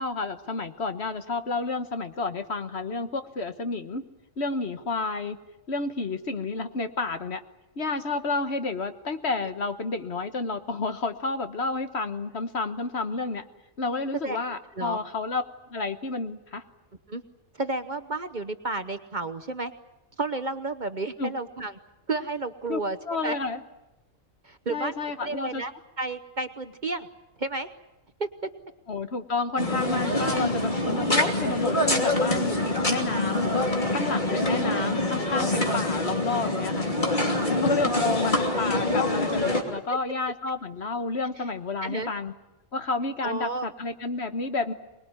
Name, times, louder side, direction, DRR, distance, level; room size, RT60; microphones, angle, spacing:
voice 1, 0.0-4.0 4.4-5.4 5.7-7.4 7.8-13.4 13.8-15.4 15.7-16.6 21.2-21.3 22.7-22.8 23.1-23.6 24.7-25.6 28.9-33.5 33.9-36.9 37.5-42.3 42.7-44.7, left 3 dB, 55° left, 8 dB, 1.5 m, -30 dB
voice 2, 17.5-19.7 20.2-21.7 22.1-23.0 23.2-23.4 24.4-25.7 26.0-27.1 27.4-27.7 28.2-28.3 37.4-38.1 39.7-40.0 41.8-42.1 43.2-43.7, right 2 dB, 40° right, 10 dB, 1.0 m, -32 dB
sound 1, 29.6-39.6, left 1 dB, 35° left, 3.1 m, -25 dB
24.5 x 20.5 x 9.7 m, 0.96 s
omnidirectional pair, 1.4 m